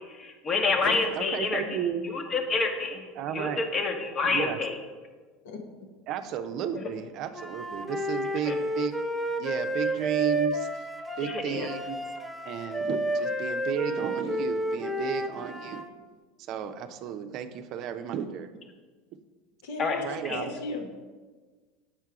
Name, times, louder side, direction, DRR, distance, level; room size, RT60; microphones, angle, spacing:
voice 1, 0.2-1.6 2.1-3.1 3.3-4.7 6.8-6.9 8.5-8.6 11.2-11.7 19.8-20.0 20.2-20.4, left 4 dB, 35° left, 5 dB, 1.0 m, -28 dB
voice 2, 1.2-2.0 3.2-3.6 4.3-4.6 6.1-9.0 9.4-10.9 11.2-12.0 12.4-15.9 16.4-18.5 20.0-20.5, right 9 dB, 55° right, 9 dB, 0.5 m, -33 dB
Wind instrument woodwind instrument, 7.3-15.9, right 1 dB, ahead, 0.7 m, -31 dB
voice 3, 19.6-20.9, left 2 dB, 75° left, 3 dB, 1.0 m, -36 dB
7.4 x 4.7 x 4.6 m, 1.4 s
hypercardioid pair, 85°, 0 cm